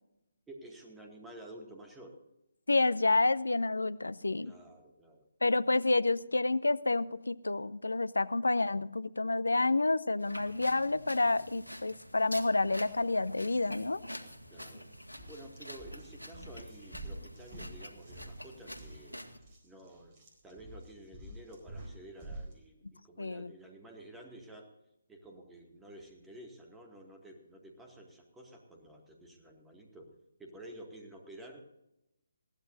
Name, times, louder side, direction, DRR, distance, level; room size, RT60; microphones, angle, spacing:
voice 1, 0.5-2.2 4.4-5.5 14.5-14.9 15.3-19.2 19.6-24.7 25.1-30.1 30.4-31.6, right 1 dB, 5° right, 2 dB, 2.1 m, -51 dB
voice 2, 2.7-4.5 5.4-14.0 23.2-23.5, left 2 dB, 70° left, 17 dB, 0.6 m, -29 dB
sound 1, 10.2-19.4, equal, 90° right, 1.7 m, -47 dB
sound 2, 14.4-14.7 15.1-22.6, right 1 dB, 25° right, 4.0 m, -48 dB
21.0 x 15.5 x 2.6 m, 0.86 s
figure-of-eight pair, 145°, 0 cm